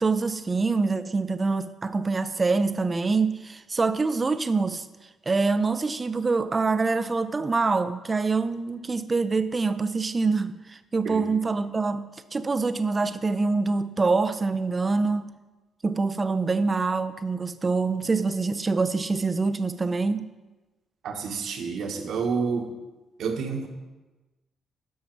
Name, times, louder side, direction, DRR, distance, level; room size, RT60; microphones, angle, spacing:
voice 1, 0.0-4.9 5.3-15.3 15.8-20.3, right 4 dB, 30° right, 0.6 m, -25 dB
voice 2, 21.0-22.7 23.2-23.7, right 5 dB, 70° right, 1.3 m, -29 dB
13.0 x 5.7 x 4.6 m
cardioid pair, 90°, 0 cm